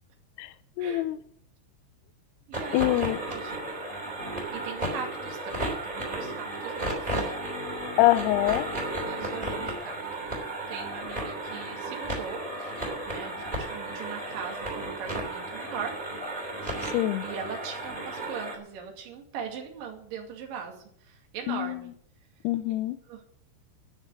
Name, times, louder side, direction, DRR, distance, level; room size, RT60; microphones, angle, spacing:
voice 1, 0.8-1.2 2.7-3.2 8.0-8.7 16.9-17.2 21.5-21.8 22.4-23.0, left 16 dB, 80° left, 11 dB, 2.5 m, -24 dB
sound 1, 2.5-18.6, right 1 dB, 10° right, 2.8 m, -34 dB
voice 2, 2.5-3.5 4.5-7.4 9.1-10.0 10.4-12.7 13.1-16.0 17.2-21.9 23.1-23.3, right 7 dB, 55° right, 1 dB, 3.5 m, -40 dB
11.5 x 6.6 x 9.6 m, 0.65 s
omnidirectional pair, 5.4 m